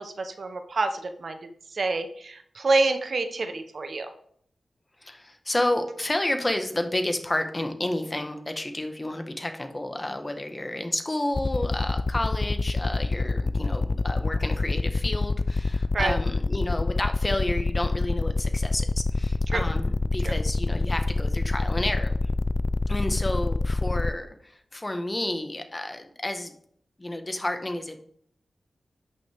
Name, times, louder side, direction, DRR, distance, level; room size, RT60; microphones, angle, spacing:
voice 1, 0.0-4.1 15.9-16.2 19.5-19.6 20.2-20.3, right 3 dB, 65° right, 8 dB, 0.9 m, -27 dB
voice 2, 5.0-22.1 22.9-26.5 27.0-28.0, left 1 dB, 25° left, 6 dB, 1.3 m, -30 dB
sound 1, 11.3-24.1, left 3 dB, 45° left, 0.4 m, -26 dB
11.5 x 6.4 x 3.5 m, 0.65 s
cardioid pair, 55°, 0 cm